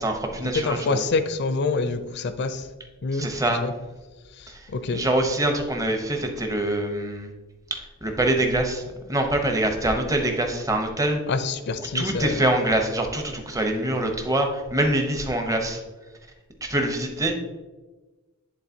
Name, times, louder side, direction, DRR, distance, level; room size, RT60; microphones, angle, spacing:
voice 1, 0.0-1.0 3.2-3.6 4.5-4.6 4.9-7.3 7.7-11.2 11.9-15.8 16.6-17.3, right 1 dB, 15° right, 4 dB, 0.7 m, -24 dB
voice 2, 0.5-2.7 3.0-3.7 4.3-5.0 11.3-12.5, left 3 dB, 50° left, 10 dB, 0.5 m, -27 dB
10.5 x 3.8 x 2.7 m, 1.2 s
head